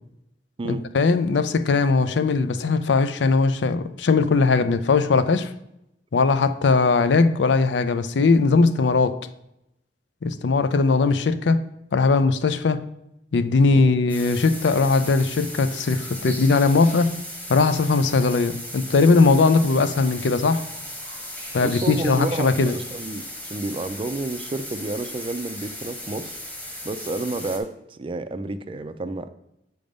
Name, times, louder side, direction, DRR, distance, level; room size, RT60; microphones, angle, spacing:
voice 1, 0.7-5.5 6.1-9.2 10.2-11.6 11.9-12.8 13.3-17.1 17.5-20.6 21.5-22.7, left 4 dB, 85° left, 12 dB, 0.5 m, -19 dB
sound 1, 14.1-27.6, left 1 dB, 10° left, 1.1 m, -37 dB
voice 2, 21.6-26.3 26.8-29.3, right 2 dB, 30° right, 11 dB, 0.4 m, -30 dB
7.7 x 3.5 x 5.2 m, 0.83 s
head